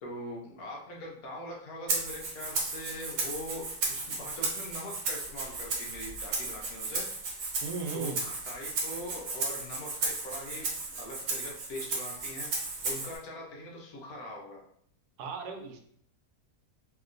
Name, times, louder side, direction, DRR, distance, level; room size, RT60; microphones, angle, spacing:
voice 1, 0.0-7.0 7.9-10.6 11.0-14.6, left 1 dB, 70° left, -1 dB, 1.2 m, -42 dB
Rattle (instrument), 1.9-13.2, right 3 dB, 60° right, 1.0 m, -34 dB
voice 2, 7.6-8.2 15.2-15.8, right 5 dB, 90° right, 4 dB, 1.2 m, -36 dB
3.0 x 2.9 x 2.5 m, 0.64 s
omnidirectional pair, 1.7 m